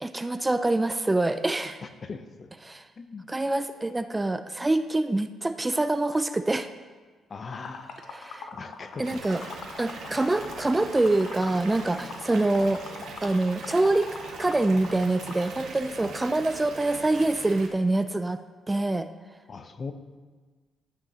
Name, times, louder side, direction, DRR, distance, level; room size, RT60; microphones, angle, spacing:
voice 1, 0.0-1.8 2.7-2.8 3.3-6.7 8.1-8.5 9.0-9.4 9.8-12.8 13.2-14.1 14.4-18.4 18.7-19.1, right 2 dB, 15° right, 11 dB, 0.3 m, -25 dB
voice 2, 1.8-2.5 3.0-3.3 7.3-8.0 8.5-9.5 16.0-16.2 19.5-19.9, left 4 dB, 40° left, 10 dB, 0.6 m, -40 dB
Liquid, 7.5-15.5, left 5 dB, 65° left, 0.9 m, -42 dB
Water tap faucet / Bathtub (filling or washing) / Fill (with liquid), 9.0-17.7, right 4 dB, 75° right, 1.3 m, -42 dB
12.0 x 8.7 x 2.8 m, 1.4 s
cardioid pair, 90°, 0 cm